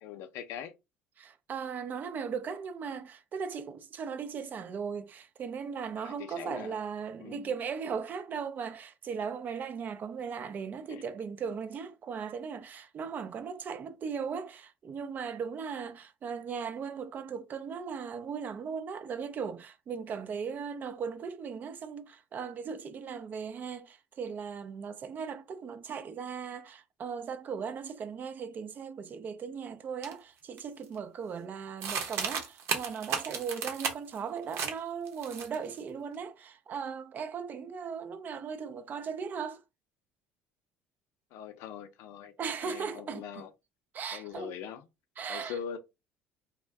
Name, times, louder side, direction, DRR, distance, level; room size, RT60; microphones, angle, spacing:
voice 1, 0.0-0.7 6.0-6.8 7.2-7.5 10.9-11.0 41.3-42.3 42.6-43.5 44.1-44.9 45.3-45.8, left 8 dB, 75° left, 0.5 m, -42 dB
voice 2, 1.2-39.6 42.4-43.4 43.9-44.5 45.2-45.6, right 6 dB, 40° right, 0.4 m, -38 dB
sound 1, 30.0-30.1 30.6-31.0 31.8-34.2 34.5-34.8 35.1-35.8, right 6 dB, 70° right, 0.8 m, -34 dB
2.6 x 2.1 x 3.3 m
cardioid pair, 105°, 5 cm